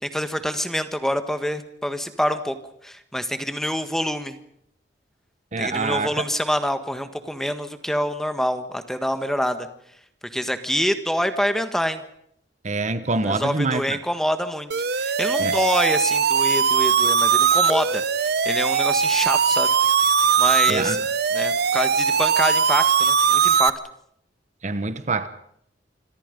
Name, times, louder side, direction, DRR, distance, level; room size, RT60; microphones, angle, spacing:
voice 1, 0.0-2.6 2.8-4.4 5.6-9.7 10.3-12.0 13.2-18.0 18.4-19.7 20.4-21.0 21.3-23.7, equal, ahead, 1.5 m, -26 dB
voice 2, 5.5-6.2 12.6-14.0 15.4-15.6 20.7-21.0 24.6-25.3, right 3 dB, 40° right, 1.1 m, -25 dB
sound 1, 14.7-23.7, right 6 dB, 60° right, 0.9 m, -20 dB
27.0 x 24.0 x 5.3 m
head